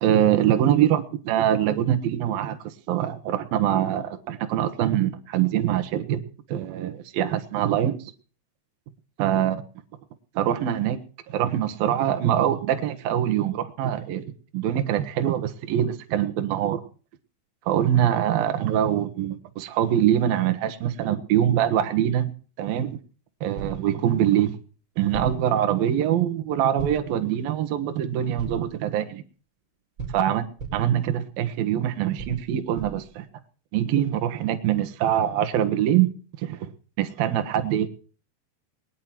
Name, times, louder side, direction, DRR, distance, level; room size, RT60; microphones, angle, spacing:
voice 1, 0.0-6.2 6.5-8.1 9.2-9.6 10.4-11.0 11.3-16.8 17.7-22.3 22.6-23.0 23.4-24.5 25.0-29.2 30.1-30.4 30.7-33.3 33.7-36.1 36.4-36.7 37.0-37.9, right 11 dB, 65° right, 8 dB, 2.6 m, -24 dB
sound 1, 23.6-23.9 25.1-25.5 26.8-27.2 28.4-28.7 30.0-30.9 32.2-33.1, right 5 dB, 25° right, 4.4 m, -35 dB
21.0 x 11.0 x 6.0 m, 0.39 s
omnidirectional pair, 5.7 m